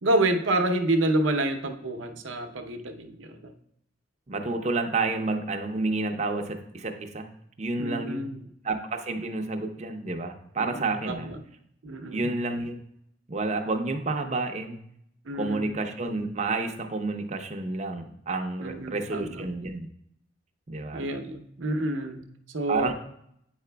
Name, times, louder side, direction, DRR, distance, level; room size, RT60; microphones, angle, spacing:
voice 1, 0.0-3.5 7.8-8.4 10.6-11.4 11.8-12.3 15.2-15.8 18.6-19.4 20.9-22.9, right 1 dB, 80° right, 6 dB, 0.7 m, -28 dB
voice 2, 4.3-7.3 7.6-8.3 8.6-11.3 12.1-12.8 13.3-14.8 15.3-19.9 20.7-21.0 22.7-22.9, right 3 dB, 35° right, 4 dB, 0.6 m, -30 dB
8.7 x 4.9 x 2.2 m, 0.73 s
head